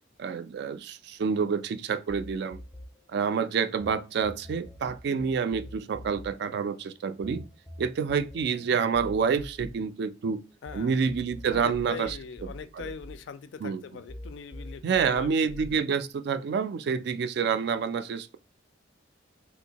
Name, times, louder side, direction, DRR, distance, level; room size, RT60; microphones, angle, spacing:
voice 1, 0.2-2.6 3.1-7.5 7.8-10.4 10.7-12.9 13.6-13.8 14.8-18.4, right 6 dB, 60° right, 0.3 m, -28 dB
sound 1, 2.1-3.9 4.2-10.8 11.1-13.8 14.1-15.7, equal, 5° left, 0.5 m, -44 dB
voice 2, 10.6-11.1 11.5-15.8, left 5 dB, 70° left, 0.3 m, -42 dB
3.4 x 2.6 x 2.8 m
head